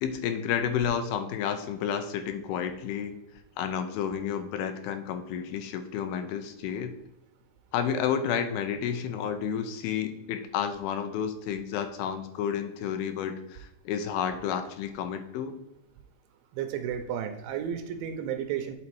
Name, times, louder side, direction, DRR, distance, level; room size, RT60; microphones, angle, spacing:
voice 1, 0.0-3.2 3.6-6.9 7.7-15.5, left 8 dB, 80° left, 8 dB, 2.4 m, -31 dB
voice 2, 16.5-18.7, right 9 dB, 80° right, 7 dB, 2.3 m, -32 dB
8.2 x 4.0 x 4.6 m, 0.92 s
omnidirectional pair, 4.5 m